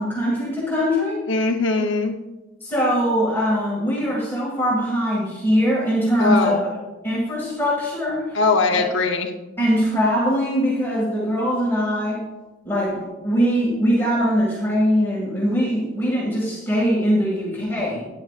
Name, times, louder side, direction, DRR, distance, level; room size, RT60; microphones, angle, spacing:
voice 1, 0.0-1.2 2.6-6.7 7.0-8.4 8.7-8.8 9.6-12.2 12.6-18.0, equal, 10° left, -6 dB, 2.0 m, -21 dB
voice 2, 1.3-2.1 6.2-6.6 8.3-9.3, left 3 dB, 75° left, 3 dB, 0.8 m, -20 dB
12.0 x 9.7 x 2.4 m, 1.1 s
head